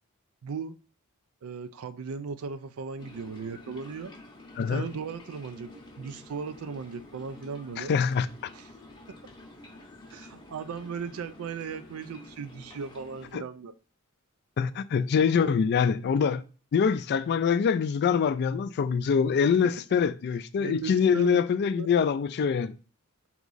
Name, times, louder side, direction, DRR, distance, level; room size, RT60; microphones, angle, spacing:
voice 1, 0.4-0.8 1.4-4.1 4.7-7.9 8.5-8.7 9.1-9.2 10.1-13.7 15.4-15.6 20.6-21.4 21.8-21.9, right 5 dB, 70° right, 0.4 m, -37 dB
sound 1, 3.0-13.3, left 1 dB, 20° left, 0.7 m, -49 dB
voice 2, 7.8-8.3 13.3-13.4 14.6-16.4 16.7-22.8, left 6 dB, 50° left, 0.3 m, -24 dB
3.6 x 3.0 x 3.9 m
head